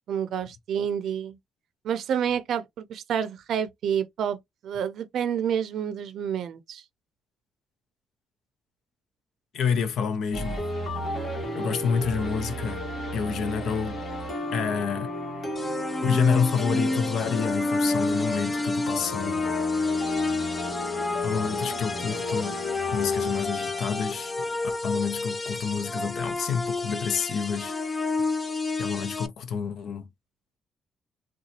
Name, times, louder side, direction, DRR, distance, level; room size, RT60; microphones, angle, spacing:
voice 1, 0.1-1.4 1.8-4.4 4.6-6.8, right 8 dB, 70° right, 0.5 m, -29 dB
voice 2, 9.5-10.6 11.5-12.8 13.1-14.0 14.5-15.1 16.0-19.5 21.2-22.6 22.9-24.3 24.8-27.8 28.8-30.1, left 6 dB, 70° left, 0.6 m, -28 dB
sound 1, 10.3-25.2, left 1 dB, 45° left, 1.5 m, -34 dB
sound 2, 15.6-29.3, left 3 dB, 25° left, 0.5 m, -29 dB
3.8 x 2.3 x 2.9 m
cardioid pair, 90°, 0 cm